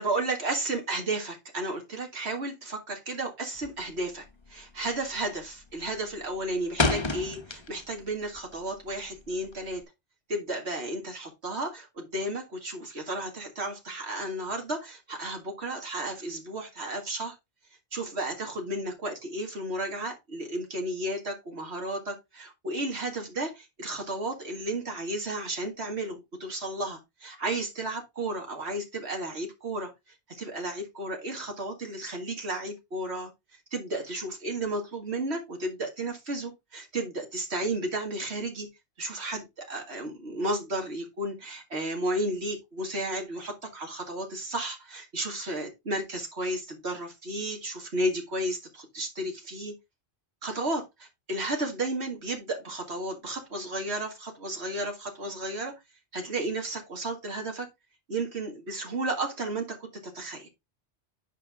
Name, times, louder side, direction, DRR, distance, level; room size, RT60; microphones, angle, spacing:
voice 1, 0.0-9.8 10.3-17.3 17.9-29.9 30.3-33.3 33.7-38.7 39.0-49.7 50.4-55.7 56.1-57.7 58.1-60.5, right 1 dB, 70° right, 2.2 m, -33 dB
sound 1, 3.6-4.0 4.2-4.6 4.9-5.4 5.7-8.0 8.4-9.8, left 3 dB, 30° left, 0.8 m, -30 dB
9.0 x 5.4 x 3.5 m
omnidirectional pair, 1.1 m